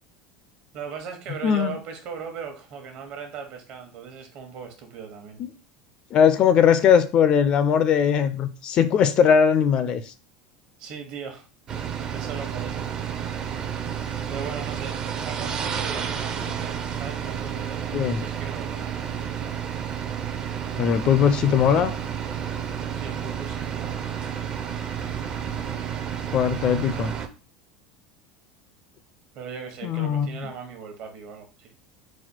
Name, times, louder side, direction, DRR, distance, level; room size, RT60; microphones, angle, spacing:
voice 1, 0.7-5.4 10.8-11.5 12.1-12.8 14.3-18.9 22.9-24.0 29.3-31.7, right 6 dB, 55° right, 5 dB, 1.1 m, -38 dB
voice 2, 1.4-1.8 6.1-10.0 17.9-18.2 20.8-21.9 26.3-27.1 29.8-30.3, left 7 dB, 40° left, 11 dB, 0.4 m, -19 dB
sound 1, 11.7-27.3, right 8 dB, 35° right, 0.5 m, -31 dB
4.1 x 2.4 x 4.3 m, 0.35 s
supercardioid pair, 130°, 2 cm